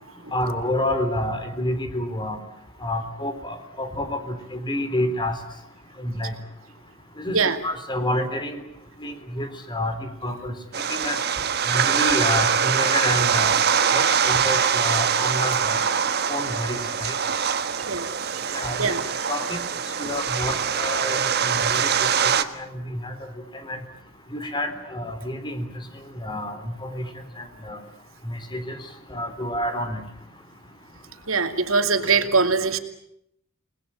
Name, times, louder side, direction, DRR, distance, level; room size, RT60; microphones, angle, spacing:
voice 1, 0.3-2.4 2.8-5.4 6.0-6.4 7.2-8.6 9.0-10.5 10.9-11.2 11.7-13.6 13.9-15.8 16.3-17.2 18.5-19.0 19.3-19.6 20.0-23.1 23.6-23.8 24.3-25.7 26.1-27.1 27.4-27.8 28.2-28.8 29.1-30.0, left 1 dB, 25° left, 8 dB, 3.8 m, -29 dB
sound 1, 10.7-22.4, right 7 dB, 50° right, 1.4 m, -23 dB
voice 2, 18.4-19.0 31.3-32.8, right 4 dB, 85° right, 7 dB, 2.5 m, -22 dB
29.5 x 20.0 x 9.0 m, 0.77 s
head